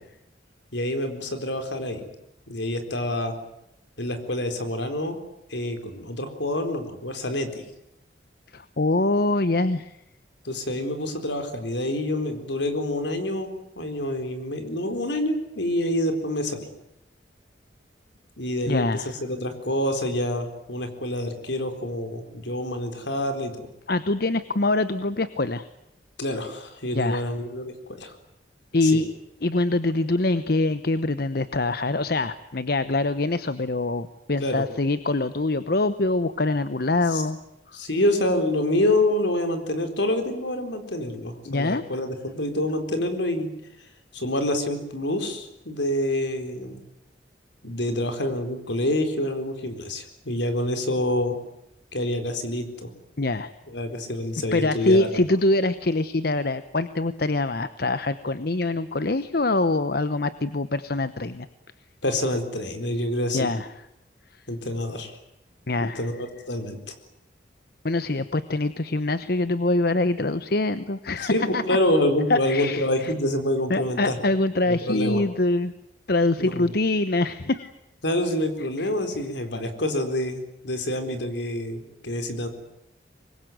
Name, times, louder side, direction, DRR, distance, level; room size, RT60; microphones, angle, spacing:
voice 1, 0.7-2.0 2.5-3.3 4.0-5.2 5.5-7.6 10.4-13.5 13.8-16.7 18.4-23.6 26.2-28.1 28.8-29.0 34.4-34.6 37.1-37.2 37.7-43.5 44.1-46.8 47.6-51.4 51.9-52.9 53.7-55.1 62.0-63.5 64.5-65.2 65.8-66.9 71.2-74.2 74.7-75.2 76.4-76.7 78.0-82.5, left 1 dB, 75° left, 7 dB, 4.2 m, -27 dB
voice 2, 8.5-9.9 18.7-19.1 23.9-25.7 26.9-27.3 28.7-29.1 29.4-37.4 41.5-41.8 53.2-53.5 54.5-61.5 63.3-63.7 65.7-66.1 67.8-71.6 72.3-73.1 73.7-75.7 76.1-77.7 78.8-78.9, left 2 dB, 55° left, 13 dB, 0.9 m, -24 dB
25.0 x 21.5 x 9.3 m, 0.82 s
head